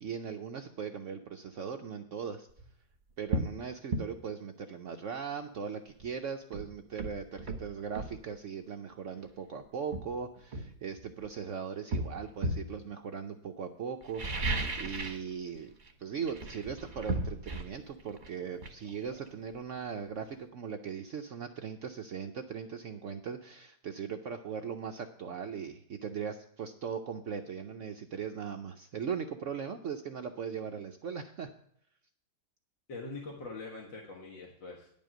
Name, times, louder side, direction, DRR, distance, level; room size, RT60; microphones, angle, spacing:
voice 1, 0.0-2.5 3.2-15.7 16.0-31.5, right 6 dB, 70° right, 5 dB, 0.7 m, -39 dB
sound 1, 2.5-2.7 3.3-3.6 3.9-4.1 6.0-6.1 6.5-8.2 9.3-9.4 9.9-11.3 11.9-12.7 14.0-15.3 15.5-15.9 16.2-19.8 20.1-20.2, right 2 dB, 30° right, 1.0 m, -35 dB
voice 2, 32.9-34.9, left 3 dB, 75° left, -2 dB, 2.3 m, -43 dB
10.5 x 5.4 x 7.6 m, 0.70 s
omnidirectional pair, 2.0 m